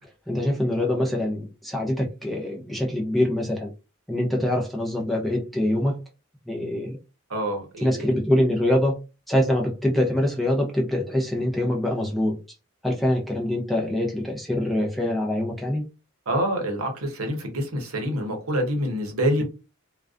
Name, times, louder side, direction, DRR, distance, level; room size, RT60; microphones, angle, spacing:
voice 1, 0.3-3.7 4.1-6.0 6.5-7.0 7.8-9.0 9.3-12.4 12.8-15.8, left 1 dB, ahead, 0.5 m, -24 dB
voice 2, 7.3-8.1 16.3-19.4, equal, 70° right, 0.8 m, -26 dB
2.3 x 2.2 x 2.4 m
head